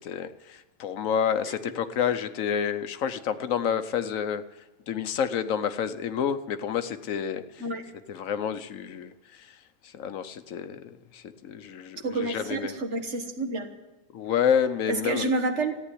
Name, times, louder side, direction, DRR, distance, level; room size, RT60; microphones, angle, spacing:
voice 1, 0.0-4.4 4.9-7.7 8.1-9.6 9.8-12.8 14.1-15.3, left 8 dB, 80° left, 11 dB, 1.2 m, -29 dB
voice 2, 12.0-13.7 14.9-15.8, right 2 dB, 60° right, 5 dB, 1.7 m, -29 dB
14.5 x 9.1 x 9.9 m, 1.1 s
omnidirectional pair, 1.4 m